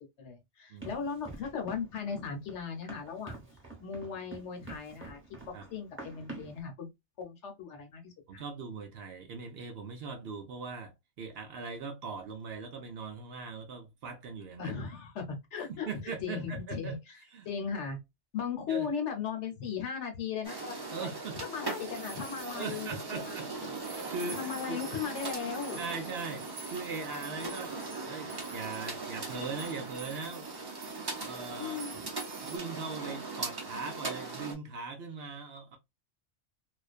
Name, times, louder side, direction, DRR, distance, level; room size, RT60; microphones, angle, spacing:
voice 1, 0.2-3.4 3.8-5.2 5.7-6.9 7.2-8.4 14.6-15.9 16.2-17.2 17.4-18.0 18.3-21.1 21.4-23.7 24.4-25.8 31.6-32.0, left 6 dB, 70° left, 1.0 m, -37 dB
voice 2, 0.7-1.0 5.5-5.6 8.3-14.7 15.7-16.9 17.3-17.5 18.7-18.9 20.9-21.4 22.5-23.5 23.9-24.4 24.7-24.8 25.8-27.8 28.0-30.5 31.2-31.8 32.4-35.8, right 4 dB, 65° right, 0.7 m, -40 dB
Run, 0.8-6.6, right 3 dB, 10° right, 0.9 m, -47 dB
sound 1, 20.4-34.5, right 3 dB, 35° right, 0.4 m, -40 dB
sound 2, 21.6-32.6, right 5 dB, 85° right, 1.0 m, -50 dB
2.4 x 2.2 x 2.3 m
omnidirectional pair, 1.3 m